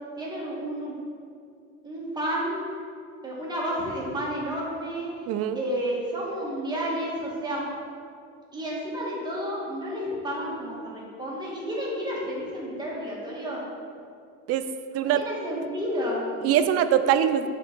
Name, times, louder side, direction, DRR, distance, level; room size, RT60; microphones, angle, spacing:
voice 1, 0.2-0.9 1.8-2.6 3.2-5.1 5.5-7.6 8.5-13.6 15.0-16.3, equal, 15° right, -5 dB, 1.7 m, -31 dB
voice 2, 5.3-5.6 14.5-14.7 14.9-15.3 16.4-17.5, right 10 dB, 50° right, 10 dB, 0.4 m, -22 dB
6.5 x 3.9 x 6.0 m, 2.3 s
cardioid pair, 135°, 31 cm